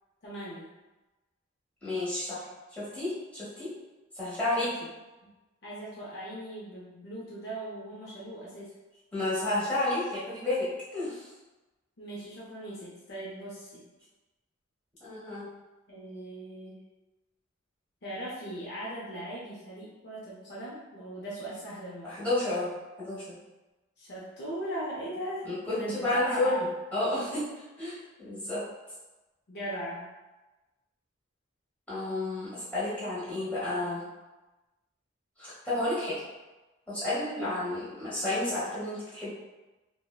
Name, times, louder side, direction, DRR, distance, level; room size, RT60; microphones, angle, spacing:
voice 1, 0.2-0.7 4.6-4.7 5.6-8.7 12.0-13.8 15.9-16.8 18.0-22.3 24.0-26.5 29.5-30.0 37.4-37.5, right 1 dB, 50° left, -6 dB, 0.5 m, -39 dB
voice 2, 1.8-2.4 2.7-3.7 4.1-4.7 9.1-11.3 15.0-15.5 22.0-22.7 23.0-23.4 25.4-26.5 26.9-27.4 27.8-28.6 31.9-34.0 35.4-36.1 36.9-39.3, left 2 dB, 5° left, -11 dB, 1.1 m, -31 dB
3.4 x 2.1 x 2.2 m, 1.1 s
head